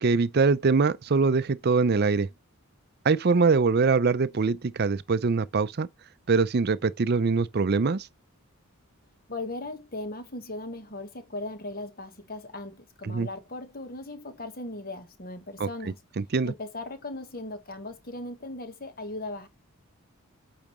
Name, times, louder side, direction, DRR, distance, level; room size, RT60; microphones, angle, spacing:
voice 1, 0.0-2.3 3.1-5.9 6.3-8.1 13.1-13.3 15.6-15.7 16.2-16.5, right 4 dB, 45° right, 0.5 m, -23 dB
voice 2, 9.3-16.0 16.4-19.5, left 2 dB, 40° left, 1.4 m, -38 dB
8.9 x 4.8 x 3.1 m
head